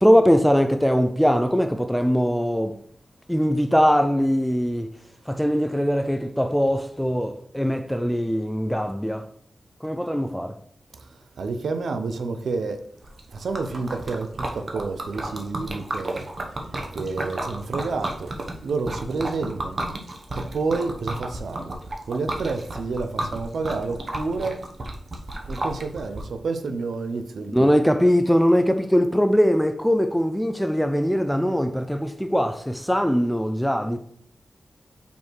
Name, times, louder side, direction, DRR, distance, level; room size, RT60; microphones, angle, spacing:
voice 1, 0.0-2.8 3.3-4.9 5.3-9.3 9.8-10.6 27.5-34.0, equal, ahead, 0.3 m, -21 dB
voice 2, 11.4-12.8 13.3-16.3 16.9-18.3 18.6-19.8 20.4-24.6 25.5-27.7, right 4 dB, 80° right, 0.7 m, -29 dB
Liquid, 13.0-26.2, right 1 dB, 35° right, 0.9 m, -33 dB
5.4 x 4.6 x 4.6 m
wide cardioid pair, 175°, 0 cm